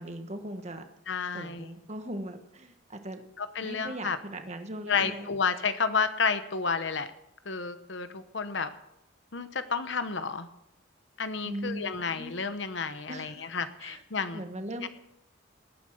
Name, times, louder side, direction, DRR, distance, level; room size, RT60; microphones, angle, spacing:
voice 1, 0.0-0.9 1.3-3.2 3.6-5.3 11.4-12.3 13.1-13.5 13.8-14.0 14.3-14.9, right 1 dB, 35° right, 7 dB, 1.5 m, -39 dB
voice 2, 1.1-1.7 3.4-4.2 4.9-7.1 7.4-8.7 9.3-10.5 11.2-14.4 14.8-14.9, left 5 dB, 65° left, 11 dB, 0.9 m, -31 dB
19.0 x 9.3 x 6.6 m, 0.81 s
head